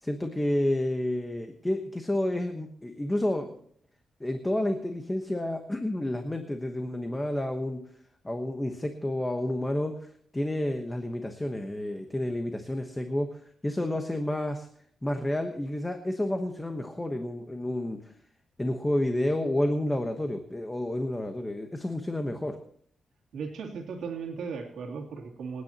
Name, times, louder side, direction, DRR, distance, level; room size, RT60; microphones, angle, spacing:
voice 1, 0.0-3.5 4.2-7.8 8.2-13.3 13.6-14.7 15.0-18.0 18.6-22.6, left 1 dB, 10° left, 5 dB, 1.1 m, -30 dB
voice 2, 23.3-25.6, right 5 dB, 75° right, 1 dB, 2.8 m, -36 dB
27.5 x 9.6 x 2.9 m, 0.63 s
wide cardioid pair, 170°, 0 cm